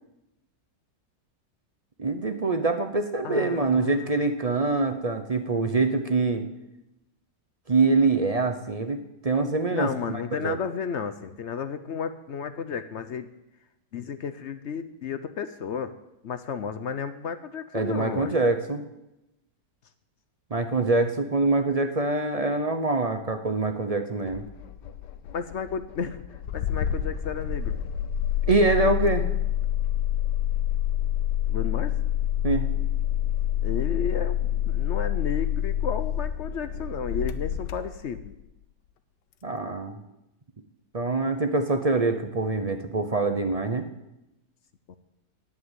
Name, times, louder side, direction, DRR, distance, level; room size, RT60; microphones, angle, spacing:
voice 1, 2.0-6.5 7.7-10.6 17.7-18.8 20.5-24.4 28.5-29.3 32.4-32.7 39.4-40.0 40.9-43.9, right 3 dB, 35° right, 7 dB, 0.6 m, -24 dB
voice 2, 3.2-4.1 9.7-13.3 13.9-15.9 16.2-18.4 25.3-26.2 26.5-27.8 31.5-32.0 33.6-38.3 44.9-45.0, left 6 dB, 60° left, 11 dB, 0.8 m, -33 dB
Engine starting, 24.3-38.4, left 11 dB, 85° left, 1.4 m, -28 dB
17.5 x 6.0 x 8.1 m, 0.91 s
omnidirectional pair, 1.8 m